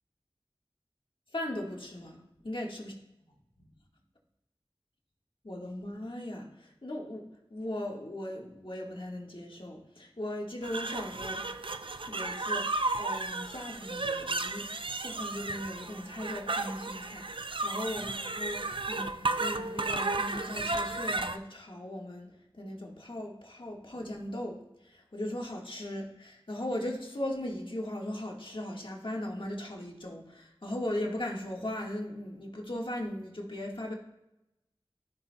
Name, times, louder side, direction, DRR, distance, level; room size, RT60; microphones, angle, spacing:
voice 1, 1.3-2.9 3.6-3.7 5.4-11.4 12.0-18.6 18.9-33.9, left 1 dB, 60° left, -1 dB, 1.5 m, -38 dB
sound 1, 10.6-21.4, right 3 dB, 60° right, 0.4 m, -33 dB
13.5 x 5.8 x 2.2 m, 0.91 s
wide cardioid pair, 40°, 10 cm